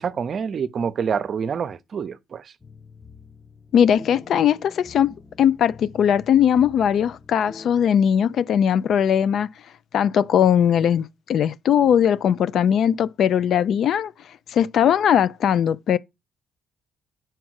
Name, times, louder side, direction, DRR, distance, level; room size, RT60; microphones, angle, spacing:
voice 1, 0.0-2.5, right 6 dB, 50° right, 0.6 m, -27 dB
sound 1, 2.6-7.7, left 4 dB, 15° left, 0.8 m, -46 dB
voice 2, 3.7-9.5 9.9-14.1 14.5-16.0, left 9 dB, 65° left, 0.4 m, -19 dB
5.9 x 4.5 x 6.3 m
cardioid pair, 90°, 0 cm